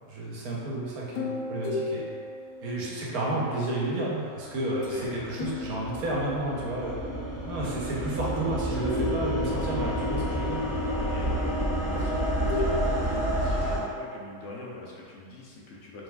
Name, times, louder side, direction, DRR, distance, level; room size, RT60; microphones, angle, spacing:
voice 1, 0.1-2.1 2.6-7.0 7.5-10.6, right 2 dB, 80° right, -5 dB, 1.3 m, -31 dB
sound 1, 1.1-3.5 4.8-5.1 5.4-6.7 8.4-10.1 12.0-14.3, left 3 dB, 80° left, 1.2 m, -36 dB
sound 2, 4.1-13.8, equal, 30° right, 1.5 m, -30 dB
voice 2, 4.9-5.2 10.9-16.0, left 2 dB, 65° left, -4 dB, 0.9 m, -43 dB
5.2 x 3.3 x 2.3 m, 2.2 s
omnidirectional pair, 1.6 m